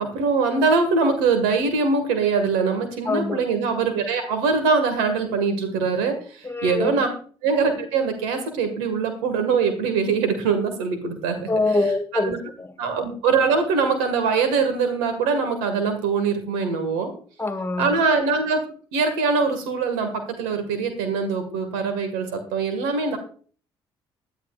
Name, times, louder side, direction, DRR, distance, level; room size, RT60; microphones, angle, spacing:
voice 1, 0.0-7.1 7.4-11.8 12.1-12.4 12.8-17.1 17.8-18.6 18.9-23.2, right 4 dB, 80° right, 7 dB, 1.8 m, -23 dB
voice 2, 3.0-3.4 6.4-7.0 11.5-12.7 17.4-18.0, left 2 dB, 20° left, 9 dB, 1.8 m, -24 dB
20.0 x 11.0 x 2.5 m, 0.42 s
hypercardioid pair, 50°, 12 cm